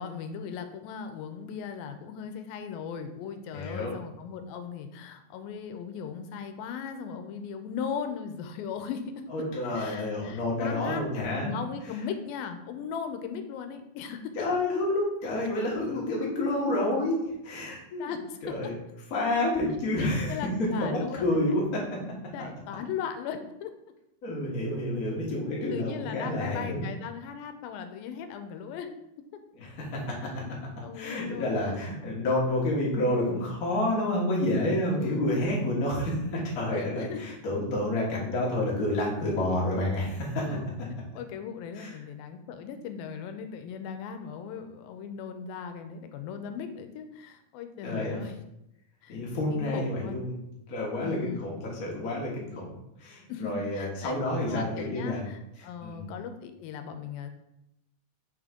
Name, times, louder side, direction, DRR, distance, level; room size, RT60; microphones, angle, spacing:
voice 1, 0.0-9.3 9.7-11.0 11.4-14.3 18.0-18.7 20.3-21.3 22.3-23.7 25.7-28.9 29.3-29.4 30.8-31.6 32.0-32.2 35.0-35.3 36.7-37.2 40.4-40.7 41.1-48.3 49.0-49.2 49.5-50.2 51.0-51.5 53.3-57.3, left 7 dB, 85° left, 8 dB, 2.4 m, -38 dB
voice 2, 3.5-3.9 9.3-11.6 14.3-18.1 18.4-18.7 19.1-22.0 24.2-26.8 29.5-30.2 30.9-40.5 41.7-41.9 47.8-48.2 49.1-50.3 50.7-52.7 53.0-55.3 55.8-56.1, left 1 dB, 50° left, -4 dB, 1.0 m, -29 dB
5.9 x 3.6 x 5.1 m, 0.83 s
omnidirectional pair, 4.1 m